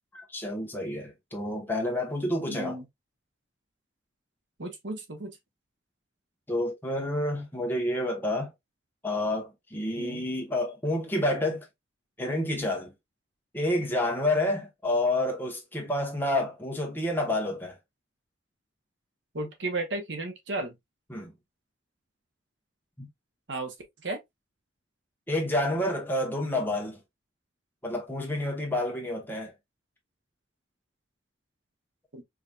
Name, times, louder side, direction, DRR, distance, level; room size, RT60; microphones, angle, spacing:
voice 1, 0.1-2.8 6.5-8.5 9.0-11.7 12.2-12.9 13.5-17.7 21.1-21.3 23.0-23.1 25.3-27.0 27.8-29.5, left 1 dB, 10° left, 1.1 m, -29 dB
voice 2, 2.5-2.8 4.6-5.3 10.0-10.2 19.3-20.7 23.5-23.7 24.0-24.2 32.1-32.2, right 2 dB, 75° right, 1.1 m, -34 dB
4.8 x 2.9 x 2.4 m
head